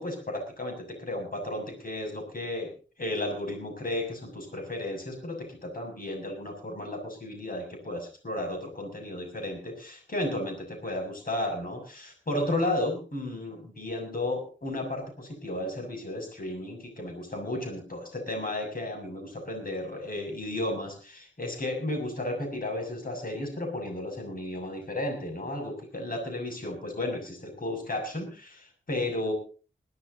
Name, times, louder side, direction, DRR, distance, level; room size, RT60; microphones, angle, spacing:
voice 1, 0.0-2.7 3.0-29.3, left 1 dB, 45° left, 3 dB, 6.9 m, -33 dB
21.5 x 17.5 x 2.8 m, 0.38 s
wide cardioid pair, 115°, 20 cm